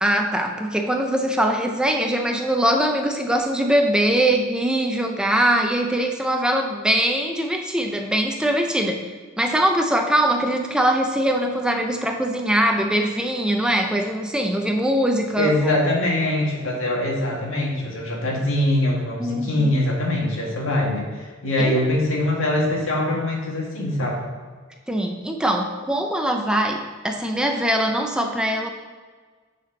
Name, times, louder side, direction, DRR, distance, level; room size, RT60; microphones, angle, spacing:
voice 1, 0.0-9.1 9.4-15.7 19.2-19.7 21.6-21.8 24.9-28.7, right 1 dB, 5° right, 3 dB, 0.5 m, -22 dB
voice 2, 15.4-24.2, left 1 dB, 80° left, -2 dB, 1.9 m, -23 dB
9.5 x 4.2 x 4.0 m, 1.5 s
head